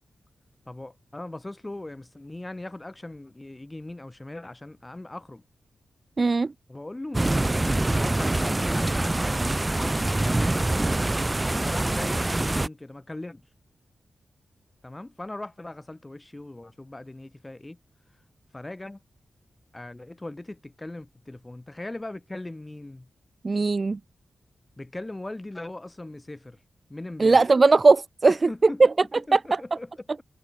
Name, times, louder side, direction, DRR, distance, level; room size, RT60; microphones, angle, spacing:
voice 1, 0.7-5.4 6.7-9.2 9.6-10.9 11.6-13.4 14.8-17.8 18.5-19.0 19.7-23.1 24.8-26.6 26.9-27.4 28.2-28.8 29.2-30.2, left 2 dB, 15° left, 7.5 m, -39 dB
voice 2, 6.2-6.5 23.4-24.0 27.2-28.3 28.8-28.9 29.3-29.4, right 3 dB, 35° right, 0.4 m, -18 dB
sound 1, 7.1-12.7, right 2 dB, 15° right, 2.3 m, -25 dB
wide cardioid pair, 140°, 0 cm